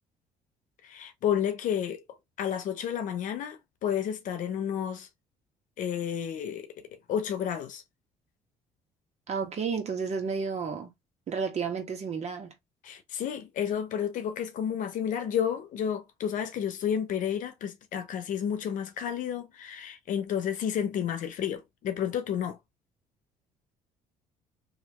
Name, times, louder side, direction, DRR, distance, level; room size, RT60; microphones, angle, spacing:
voice 1, 0.8-2.0 2.4-5.1 5.8-6.7 7.1-7.8 12.8-22.6, left 9 dB, 65° left, 0.8 m, -31 dB
voice 2, 9.3-10.9 11.3-12.5, right 5 dB, 50° right, 1.4 m, -31 dB
3.1 x 2.8 x 2.9 m
supercardioid pair, 75°, 14 cm